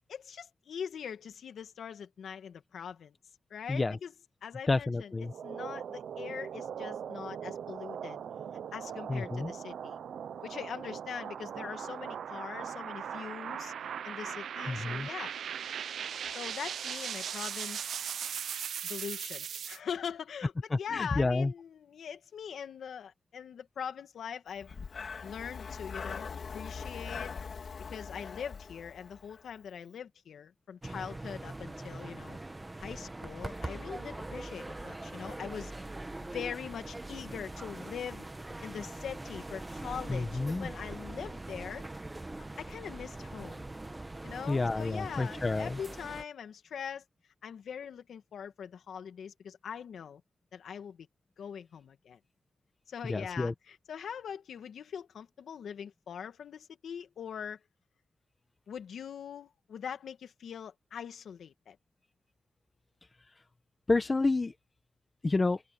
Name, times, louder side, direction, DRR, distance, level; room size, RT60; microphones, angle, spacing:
voice 1, 0.1-3.2 3.5-4.1 4.4-8.2 8.7-10.0 10.4-13.7 14.0-15.3 16.3-17.9 18.8-24.7 25.2-27.3 27.9-32.4 32.8-35.7 36.2-38.3 38.6-41.8 42.4-43.7 44.2-47.0 47.4-50.2 50.5-51.1 51.4-52.2 52.9-57.6 58.7-61.8, left 7 dB, 75° left, 2.2 m, -42 dB
voice 2, 4.7-5.3 9.1-9.5 14.7-15.1 20.7-21.5 40.1-40.7 44.5-45.8 53.1-53.5 63.9-64.5 65.2-65.6, left 3 dB, 25° left, 1.4 m, -29 dB
sound 1, 5.2-19.8, right 8 dB, 75° right, 0.8 m, -39 dB
Breathing, 24.6-29.5, left 5 dB, 50° left, 4.2 m, -42 dB
sound 2, 30.8-46.2, right 2 dB, 15° right, 1.4 m, -42 dB
cardioid pair, 105°, 0 cm